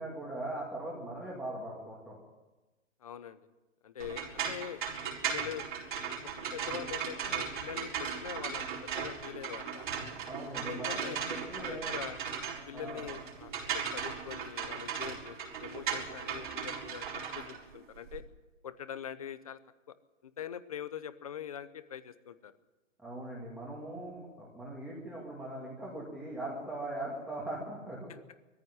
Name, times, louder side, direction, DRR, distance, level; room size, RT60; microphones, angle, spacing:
voice 1, 0.0-2.2 10.2-11.9 12.7-13.1 23.0-28.1, right 1 dB, 5° right, -5 dB, 2.1 m, -40 dB
voice 2, 3.0-3.4 3.8-4.8 5.2-5.6 6.4-9.9 10.7-11.2 11.6-12.2 12.7-18.2 18.6-19.6 19.9-20.0 20.2-22.5 28.1-28.2, left 9 dB, 30° left, 14 dB, 0.8 m, -43 dB
sound 1, 4.0-18.2, right 7 dB, 40° right, 4.5 m, -37 dB
20.5 x 14.5 x 9.5 m, 1.1 s
hypercardioid pair, 175°, 37 cm